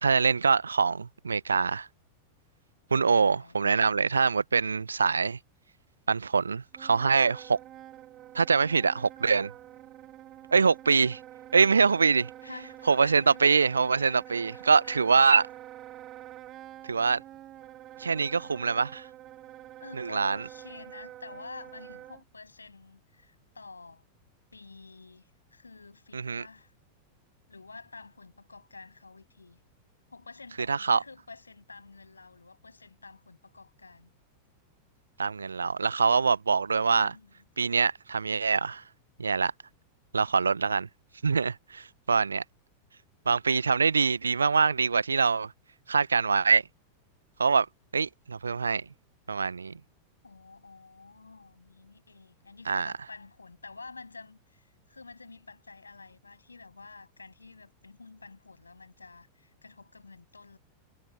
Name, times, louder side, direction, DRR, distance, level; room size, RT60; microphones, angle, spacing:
voice 1, 0.0-1.9 2.9-5.4 6.1-7.6 8.3-9.5 10.5-11.2 11.5-12.3 12.9-15.5 16.8-17.2 18.0-19.1 19.9-20.4 26.1-26.5 30.7-31.0 35.2-37.1 37.6-38.8 39.2-39.5 40.1-40.9 41.2-42.4 43.3-45.5 45.9-46.6 47.4-47.7 47.9-48.9 49.3-49.8 52.7-52.9, right 5 dB, 75° right, 0.8 m, -24 dB
voice 2, 3.0-3.6 12.4-13.4 14.0-15.0 19.8-24.0 24.5-26.7 27.5-29.6 30.1-34.1 36.8-37.3 50.2-60.6, left 4 dB, 80° left, 7.6 m, -49 dB
Wind instrument woodwind instrument, 6.7-22.2, right 13 dB, 30° right, 1.6 m, -47 dB
figure-of-eight pair, 90°, 0 cm